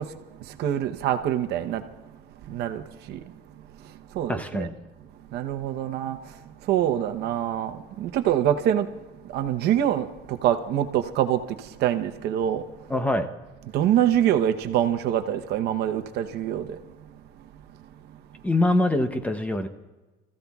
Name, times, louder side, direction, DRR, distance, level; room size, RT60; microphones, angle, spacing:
voice 1, 0.0-1.9 2.5-3.3 3.8-4.7 5.3-12.9 13.7-16.8, right 10 dB, 65° right, 0.9 m, -26 dB
voice 2, 4.3-4.7 12.9-13.3 18.4-19.7, left 1 dB, 10° left, 0.7 m, -24 dB
28.5 x 15.0 x 2.4 m
cardioid pair, 150°, 18 cm